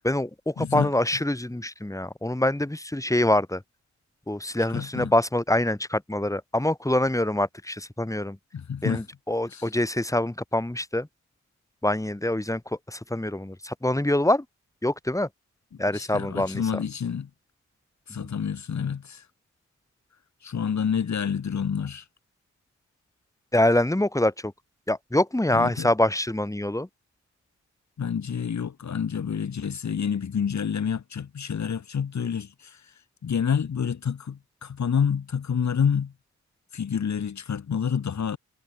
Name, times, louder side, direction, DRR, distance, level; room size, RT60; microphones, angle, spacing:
voice 1, 0.0-3.6 4.3-8.4 8.8-11.1 11.8-14.4 14.8-15.3 15.8-16.6 18.2-18.3 23.5-24.5 24.9-26.9, left 1 dB, 10° left, 5.8 m, -25 dB
voice 2, 0.6-0.9 4.7-5.1 8.5-9.0 9.5-9.7 15.7-17.3 18.1-19.3 20.4-22.1 25.5-25.9 28.0-32.9 33.2-36.1 36.7-38.4, left 7 dB, 65° left, 3.5 m, -28 dB
cardioid pair, 70°, 30 cm